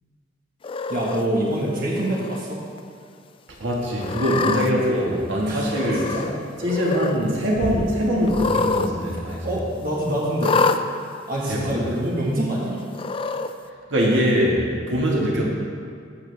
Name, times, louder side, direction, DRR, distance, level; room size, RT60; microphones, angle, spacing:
Cat, 0.6-1.2 2.0-2.4 2.8-2.9 4.0-4.7 5.7-6.3 6.6-7.2 8.2-8.9 9.2-9.3 10.4-10.8 11.7-11.8 12.9-13.5, left 4 dB, 30° left, 0.3 m, -25 dB
voice 1, 0.9-2.6 5.5-5.8 6.1-6.3 9.4-10.6 11.3-12.8, right 1 dB, 50° right, -4 dB, 1.5 m, -25 dB
voice 2, 3.6-6.2 6.6-9.6 11.5-11.8 13.9-15.4, equal, 80° right, -3 dB, 1.7 m, -22 dB
13.5 x 7.2 x 3.4 m, 2.2 s
head